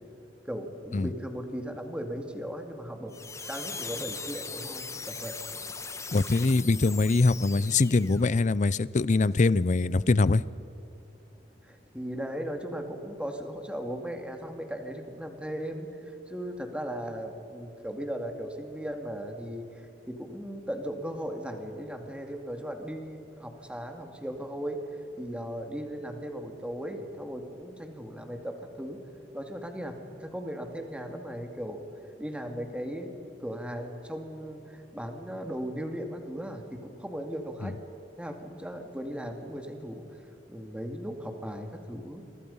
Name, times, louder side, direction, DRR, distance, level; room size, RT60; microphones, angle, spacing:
voice 1, 0.5-3.2 3.5-5.4 11.7-24.8 25.2-29.0 29.3-31.8 32.2-33.1 33.4-37.8 38.2-40.0 40.5-42.2, equal, 5° right, 4 dB, 2.4 m, -37 dB
sound 1, 3.1-8.3, left 4 dB, 15° left, 1.3 m, -39 dB
voice 2, 6.1-10.4 37.6-37.7, left 3 dB, 45° left, 19 dB, 0.5 m, -23 dB
29.0 x 24.0 x 5.6 m, 3.0 s
head